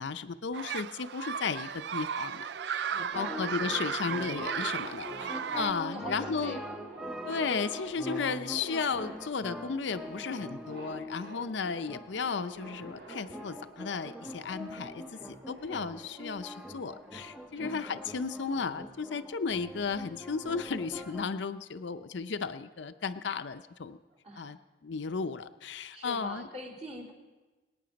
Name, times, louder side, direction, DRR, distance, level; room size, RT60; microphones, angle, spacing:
voice 1, 0.0-2.5 2.7-5.1 5.5-6.6 7.3-15.0 15.5-24.0 24.4-24.6 24.8-26.5, left 5 dB, 70° left, 10 dB, 0.5 m, -34 dB
sound 1, 0.5-5.7, right 7 dB, 60° right, 0.4 m, -35 dB
sound 2, 2.1-18.0, right 2 dB, 85° right, 3.7 m, -49 dB
voice 2, 2.9-3.5 5.1-5.6 5.9-6.8 17.5-17.9 24.2-24.6 25.9-27.1, right 1 dB, 35° right, -1 dB, 2.7 m, -44 dB
sound 3, 3.1-21.3, equal, 5° right, 0.6 m, -43 dB
25.0 x 9.2 x 5.2 m, 1.2 s
head